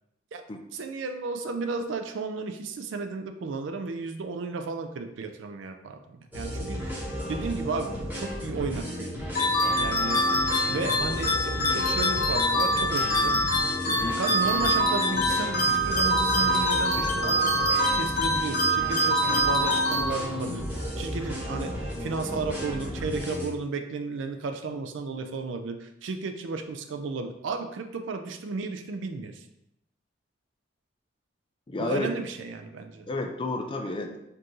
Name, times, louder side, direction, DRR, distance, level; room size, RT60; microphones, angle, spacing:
voice 1, 0.7-7.0 7.3-13.4 14.1-17.5 17.8-20.7 21.0-29.4 31.8-33.1, right 4 dB, 70° right, 6 dB, 0.4 m, -34 dB
sound 1, 6.3-23.5, left 1 dB, 10° right, 1.0 m, -34 dB
sound 2, 9.3-20.6, equal, 50° left, 0.7 m, -25 dB
voice 2, 13.9-14.2 31.7-32.1 33.1-34.2, left 2 dB, 25° left, 4 dB, 0.3 m, -31 dB
4.5 x 2.5 x 3.0 m, 0.83 s
head